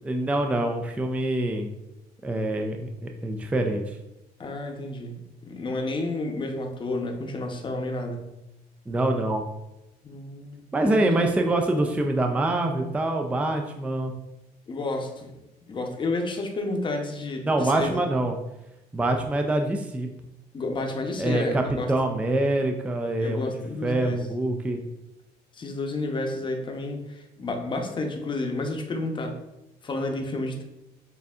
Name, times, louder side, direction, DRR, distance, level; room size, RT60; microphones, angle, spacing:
voice 1, 0.0-1.7 2.2-4.0 8.9-9.4 10.7-14.1 17.5-18.3 18.9-20.1 21.2-24.8, right 2 dB, 10° right, 4 dB, 0.3 m, -25 dB
voice 2, 4.4-8.3 10.0-11.1 14.7-18.0 20.5-21.9 23.2-24.2 25.5-29.4 29.8-30.6, left 2 dB, 30° left, 3 dB, 0.7 m, -31 dB
6.5 x 2.6 x 2.4 m, 0.92 s
cardioid pair, 110°, 17 cm